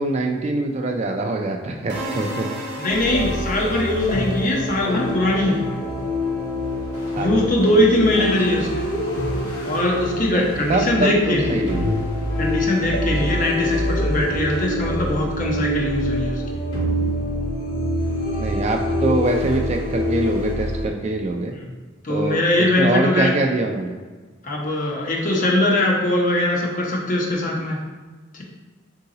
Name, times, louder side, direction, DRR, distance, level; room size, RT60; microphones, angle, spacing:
voice 1, 0.0-2.5 7.1-7.9 8.2-8.3 10.3-11.9 18.4-21.5 22.1-24.0, right 2 dB, 35° right, 3 dB, 0.3 m, -24 dB
sound 1, 1.9-6.0, right 1 dB, 55° right, 0.7 m, -34 dB
voice 2, 2.8-5.6 7.1-8.8 9.6-11.6 12.4-16.4 22.0-23.3 24.4-27.8 28.3-28.4, left 1 dB, 40° left, -2 dB, 0.8 m, -21 dB
sound 2, 2.9-20.8, left 1 dB, 55° left, 1.3 m, -25 dB
3.8 x 2.8 x 3.8 m, 1.4 s
head